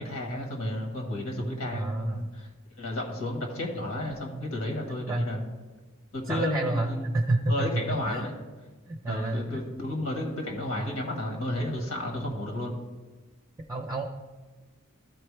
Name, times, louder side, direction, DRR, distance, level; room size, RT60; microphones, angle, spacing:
voice 1, 0.0-2.5 2.7-5.4 6.1-7.1 7.5-8.3 9.1-12.7, left 1 dB, 80° left, 1 dB, 1.6 m, -32 dB
voice 2, 1.7-2.3 5.1-5.3 6.3-7.7 8.1-8.3 8.9-9.6 13.7-14.0, right 2 dB, 15° right, 2 dB, 0.5 m, -29 dB
13.5 x 4.5 x 3.3 m, 1.3 s
head